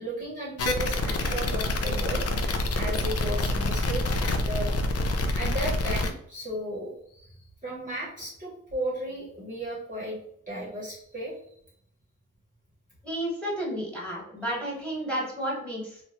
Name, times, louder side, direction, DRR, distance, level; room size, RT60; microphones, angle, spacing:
voice 1, 0.0-2.3 2.7-4.8 5.3-7.3 7.6-10.2 10.5-11.4, right 1 dB, 25° right, -5 dB, 0.9 m, -34 dB
sound 1, 0.6-6.1, left 2 dB, 50° left, 0.5 m, -27 dB
voice 2, 13.0-16.0, equal, 5° left, -4 dB, 1.3 m, -32 dB
2.9 x 2.2 x 2.8 m, 0.67 s
cardioid pair, 75°, 31 cm